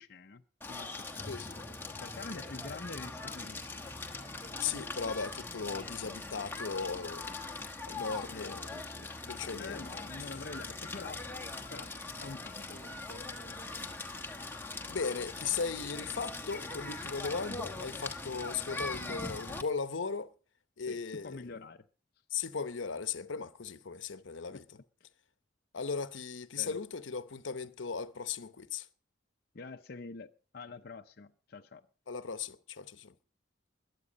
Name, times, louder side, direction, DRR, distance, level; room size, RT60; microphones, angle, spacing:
voice 1, 0.0-1.4 2.0-3.9 8.1-11.3 11.7-12.0 12.2-13.9 20.9-21.9 24.5-24.6 26.6-26.8 29.5-31.9, left 3 dB, 55° left, 0.6 m, -47 dB
Crackle, 0.6-19.6, left 3 dB, 10° left, 1.2 m, -41 dB
voice 2, 4.6-7.4 7.9-8.7 9.3-9.8 14.9-20.3 20.8-21.4 22.3-24.6 25.7-28.9 32.1-33.1, left 5 dB, 80° left, 0.8 m, -37 dB
21.0 x 8.3 x 5.2 m
head